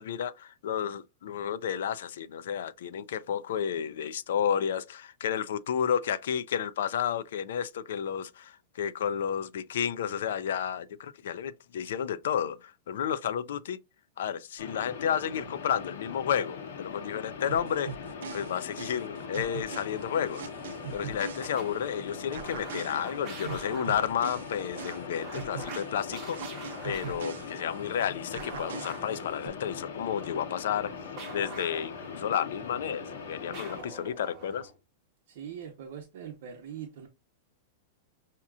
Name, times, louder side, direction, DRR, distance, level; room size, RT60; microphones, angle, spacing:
voice 1, 0.0-13.8 14.2-20.5 20.9-26.4 26.8-30.9 31.3-34.7, left 8 dB, 70° left, 0.4 m, -31 dB
sound 1, 14.6-33.8, left 6 dB, 90° left, 1.2 m, -41 dB
sound 2, 17.5-22.0 22.3-28.0 28.3-29.5, right 7 dB, 80° right, 0.5 m, -42 dB
sound 3, 19.1-34.8, right 3 dB, 20° right, 1.4 m, -47 dB
voice 2, 35.3-37.1, right 8 dB, 55° right, 0.8 m, -42 dB
6.0 x 2.9 x 2.3 m
supercardioid pair, 175°, 0 cm